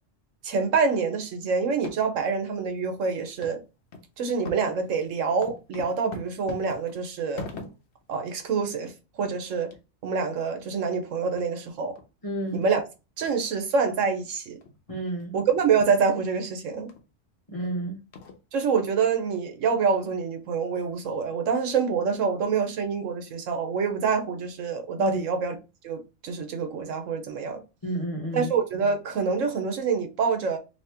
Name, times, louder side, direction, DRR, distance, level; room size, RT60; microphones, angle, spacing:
voice 1, 0.4-3.6 4.2-7.4 8.1-9.7 10.0-11.9 12.5-12.8 13.2-14.6 15.3-16.9 18.5-25.6 25.8-27.6 28.3-30.6, right 5 dB, 90° right, 1.2 m, -26 dB
sound 1, 1.7-2.3 2.7-2.8 3.4-3.6 3.9-4.1 4.4-8.0 8.4-8.5 8.8-9.0 9.2-9.4 9.7-9.8 10.3-10.4 10.8-10.9 11.4-11.5 12.0-12.1 12.6-12.7 13.2-13.3 14.0-14.2 14.6-14.8 15.2-15.3 15.7-15.9 16.3-16.4 16.9-17.0 17.6-17.7 18.1-18.7, left 3 dB, 60° left, 1.0 m, -43 dB
voice 2, 12.2-12.6 14.9-15.3 17.5-18.0 25.0-25.2 27.8-28.5, right 1 dB, 30° left, 1.0 m, -31 dB
2.9 x 2.9 x 3.4 m
omnidirectional pair, 1.3 m